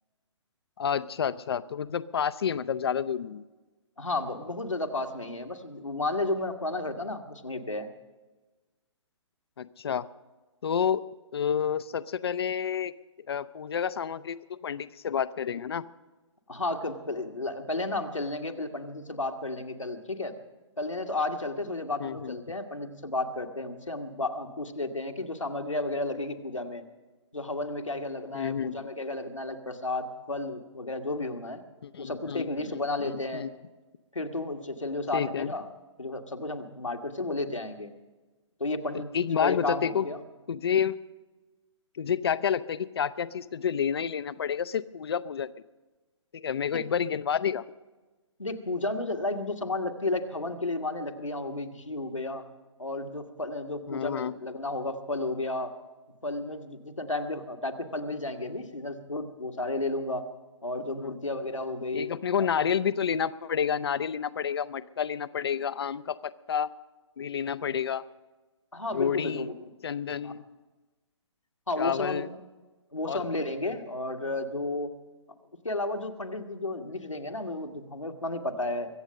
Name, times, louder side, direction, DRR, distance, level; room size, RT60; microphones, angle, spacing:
voice 1, 0.8-3.4 9.6-10.1 10.6-11.0 11.3-12.9 13.3-15.8 22.0-22.4 28.3-28.8 31.8-33.5 35.1-35.5 39.1-40.1 40.5-41.0 41.9-45.5 46.3-47.6 53.9-54.3 61.0-61.2 61.9-66.7 67.2-68.0 68.9-69.5 69.8-70.4 71.8-72.3 73.1-73.2, left 8 dB, 55° left, 16 dB, 0.6 m, -29 dB
voice 2, 4.0-7.9 16.5-20.4 20.8-26.8 27.3-31.6 32.0-33.5 34.1-35.7 36.0-37.9 38.6-39.1 39.4-40.2 48.4-52.5 52.8-55.7 56.2-60.2 60.6-62.1 62.4-62.5 68.7-69.7 70.2-70.3 71.7-72.3 72.9-74.9 75.6-78.9, left 2 dB, 80° left, 4 dB, 1.5 m, -32 dB
23.0 x 8.2 x 6.4 m, 1.2 s
figure-of-eight pair, 125°, 16 cm